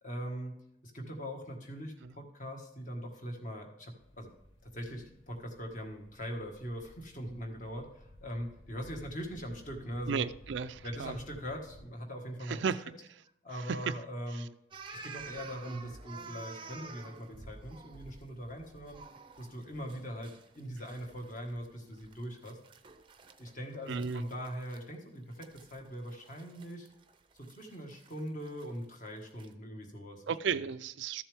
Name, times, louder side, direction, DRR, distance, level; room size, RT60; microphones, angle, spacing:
voice 1, 0.0-4.3 4.6-10.2 10.8-12.6 13.4-14.5 15.0-19.0 19.4-22.6 23.4-26.9 27.4-30.2, equal, 40° left, 1.7 m, -41 dB
sound 1, 4.0-11.8, left 1 dB, 80° left, 1.2 m, -56 dB
voice 2, 10.1-11.2 12.5-12.8 13.7-13.9 14.3-14.4 15.7-15.8 23.9-24.2 30.3-31.2, right 6 dB, 70° right, 0.4 m, -34 dB
sound 2, 14.7-24.8 25.3-29.5, right 4 dB, 25° right, 0.6 m, -51 dB
13.5 x 7.2 x 3.5 m
head